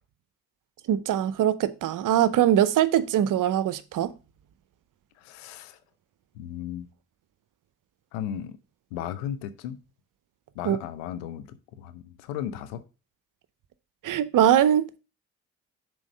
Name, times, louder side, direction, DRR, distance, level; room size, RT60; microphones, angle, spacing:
voice 1, 0.9-4.1 10.6-10.8 14.0-15.0, right 11 dB, 60° right, 0.7 m, -22 dB
voice 2, 5.2-5.8 6.3-6.9 8.1-8.6 8.9-9.8 10.5-12.8, left 10 dB, 85° left, 0.7 m, -35 dB
6.3 x 4.6 x 5.1 m
hypercardioid pair, 40°, 36 cm